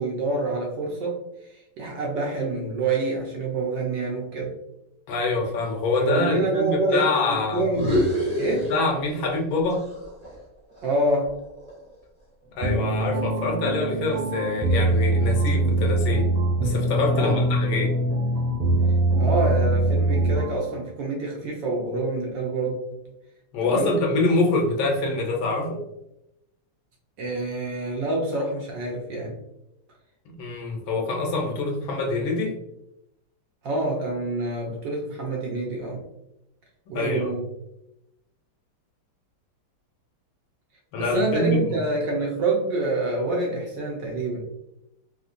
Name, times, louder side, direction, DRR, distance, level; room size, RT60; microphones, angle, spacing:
voice 1, 0.0-4.5 6.0-8.0 8.3-8.7 10.8-11.4 17.1-17.5 19.2-23.1 23.6-23.9 27.2-29.4 33.6-36.0 36.9-37.4 41.0-44.4, right 2 dB, 70° right, -2 dB, 1.2 m, -27 dB
voice 2, 5.1-7.7 8.7-9.8 12.5-16.3 16.6-17.9 23.5-25.8 30.3-32.6 36.9-37.3 40.9-41.8, left 3 dB, 75° left, 1 dB, 1.4 m, -25 dB
sound 1, 7.6-9.4 9.7-11.9, equal, 20° right, 0.9 m, -28 dB
sound 2, 12.6-20.7, right 2 dB, 90° right, 1.5 m, -23 dB
3.5 x 2.6 x 2.4 m, 0.86 s
omnidirectional pair, 2.4 m